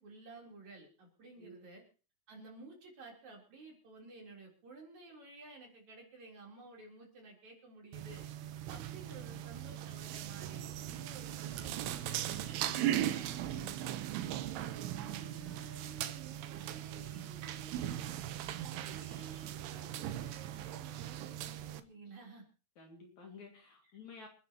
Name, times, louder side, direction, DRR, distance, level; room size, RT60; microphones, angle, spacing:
voice 1, 0.0-1.8 2.3-13.5 14.4-18.2 18.6-22.4, right 3 dB, 45° right, 0 dB, 4.9 m, -54 dB
sound 1, 7.9-21.8, right 12 dB, 90° right, 3.0 m, -39 dB
voice 2, 9.0-9.4 13.5-13.8 22.8-24.3, left 4 dB, 50° left, 2 dB, 3.4 m, -53 dB
28.5 x 10.0 x 3.0 m, 0.35 s
omnidirectional pair, 4.7 m